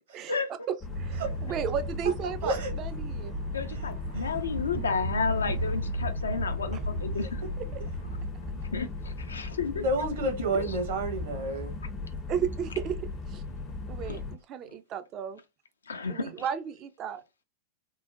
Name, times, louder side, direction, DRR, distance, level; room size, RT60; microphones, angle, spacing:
voice 1, 0.7-3.3 6.7-6.8 7.6-7.8 12.3-13.4 13.9-15.4 16.1-17.2, right 8 dB, 35° right, 0.4 m, -34 dB
sound 1, 0.8-14.4, left 3 dB, 20° left, 0.5 m, -37 dB
sound 2, 0.9-8.3, right 1 dB, 85° right, 1.8 m, -35 dB
voice 2, 3.5-7.3 8.7-9.9 10.5-10.8 14.1-14.2 15.9-16.3, left 5 dB, 75° left, 0.4 m, -32 dB
voice 3, 9.7-11.7, right 1 dB, 60° right, 1.0 m, -29 dB
3.7 x 2.1 x 2.4 m
figure-of-eight pair, 90°, 0 cm